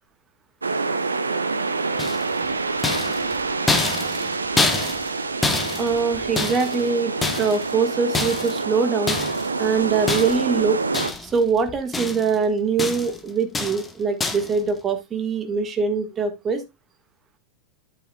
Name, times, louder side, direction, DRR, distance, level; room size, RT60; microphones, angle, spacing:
sound 1, 0.6-11.1, right 4 dB, 75° right, 0.7 m, -26 dB
sound 2, 2.0-2.4 2.8-6.8 7.2-7.7 8.1-8.6 9.1-9.5 10.1-10.6 10.9-11.4 11.7-12.4 12.8-13.2 13.5-13.9 14.2-14.6, left 3 dB, 15° left, 1.3 m, -26 dB
voice 1, 5.8-9.2 9.6-10.8 11.2-16.6, right 5 dB, 25° right, 7 dB, 1.6 m, -23 dB
9.3 x 8.7 x 2.3 m, 0.21 s
figure-of-eight pair, 90°, 0 cm